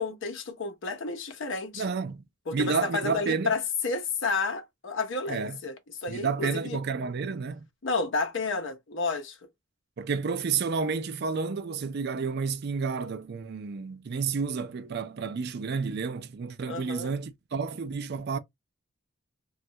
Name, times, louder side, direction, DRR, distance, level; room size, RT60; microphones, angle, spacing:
voice 1, 0.0-1.8 2.5-5.7 6.0-6.8 7.8-9.4 16.7-17.1, left 4 dB, 60° left, 0.8 m, -31 dB
voice 2, 1.7-2.2 2.5-3.6 5.3-5.6 6.1-7.7 10.0-18.4, right 5 dB, 50° right, 0.4 m, -30 dB
3.1 x 2.3 x 2.7 m
head